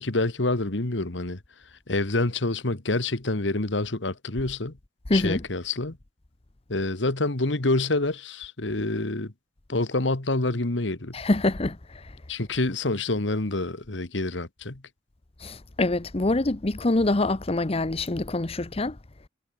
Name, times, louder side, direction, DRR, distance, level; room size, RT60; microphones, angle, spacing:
voice 1, 0.0-1.4 1.9-4.7 5.1-6.0 6.7-9.3 9.7-11.2 12.3-14.8, left 2 dB, 75° left, 1.8 m, -27 dB
voice 2, 5.1-5.4 11.1-12.1 15.4-19.0, left 2 dB, 35° left, 0.9 m, -25 dB
head